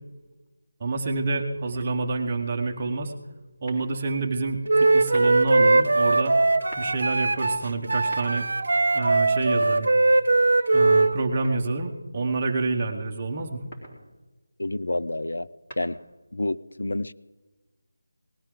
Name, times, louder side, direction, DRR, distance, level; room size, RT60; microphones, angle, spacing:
voice 1, 0.8-3.1 3.6-6.4 6.8-8.5 8.9-9.9 10.7-13.6, right 3 dB, 20° right, 2 dB, 1.0 m, -28 dB
sound 1, 3.7-4.2 5.0-5.6 6.5-7.0 7.9-8.7 9.5-10.4 11.4-12.1 13.5-14.1 15.4-16.3, right 1 dB, 15° left, 3.1 m, -46 dB
Wind instrument woodwind instrument, 4.7-11.1, right 2 dB, 50° right, 1.0 m, -20 dB
voice 2, 14.6-15.5 15.8-16.0 16.3-17.1, left 2 dB, 90° left, 14 dB, 0.6 m, -28 dB
19.0 x 13.5 x 3.8 m, 1.2 s
figure-of-eight pair, 180°, 0 cm